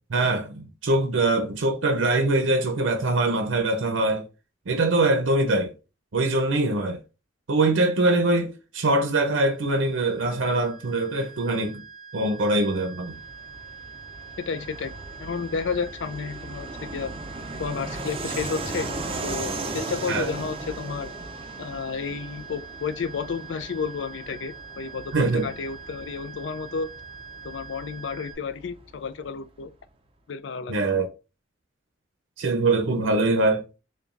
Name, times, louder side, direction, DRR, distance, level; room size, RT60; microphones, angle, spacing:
voice 1, 0.1-4.2 4.7-5.7 6.1-7.0 7.5-11.8 12.1-13.2 20.1-20.3 25.1-25.5 30.7-31.1 32.4-33.8, right 2 dB, 75° right, 0.6 m, -23 dB
sound 1, 9.3-28.3, right 6 dB, 40° left, 1.0 m, -44 dB
Fixed-wing aircraft airplane, 13.1-29.3, right 2 dB, 30° right, 0.5 m, -37 dB
voice 2, 14.4-14.9 15.2-17.1 17.6-18.9 19.2-21.1 21.6-26.9 27.4-29.7 30.3-30.7, left 5 dB, 65° left, 0.4 m, -31 dB
6.8 x 2.3 x 2.4 m
head